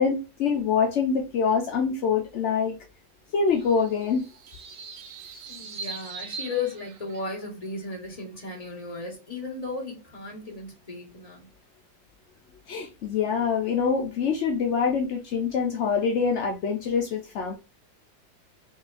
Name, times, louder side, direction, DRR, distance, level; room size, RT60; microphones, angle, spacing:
voice 1, 0.0-2.8 3.3-4.2 12.7-17.5, left 6 dB, 70° left, 0.7 m, -25 dB
sound 1, 3.5-7.5, right 4 dB, 70° right, 1.4 m, -41 dB
voice 2, 5.5-11.5, left 4 dB, 20° left, 1.4 m, -35 dB
5.5 x 2.7 x 2.5 m
omnidirectional pair, 2.0 m